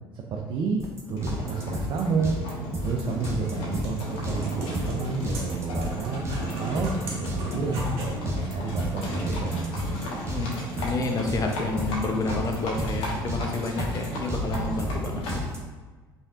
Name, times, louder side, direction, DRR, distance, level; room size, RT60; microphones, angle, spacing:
voice 1, 0.1-0.8 1.1-2.3 2.8-9.7, right 4 dB, 45° right, 0 dB, 0.6 m, -30 dB
sound 1, 0.8-15.6, equal, 25° right, 1.0 m, -33 dB
Livestock farm animals working animals, 1.2-15.5, equal, 55° left, 1.3 m, -34 dB
sound 2, 3.2-8.2, right 1 dB, 60° right, 1.4 m, -40 dB
voice 2, 10.8-15.4, left 3 dB, 30° left, 2 dB, 0.8 m, -29 dB
5.2 x 3.4 x 2.5 m, 1.3 s
figure-of-eight pair, 65°, 12 cm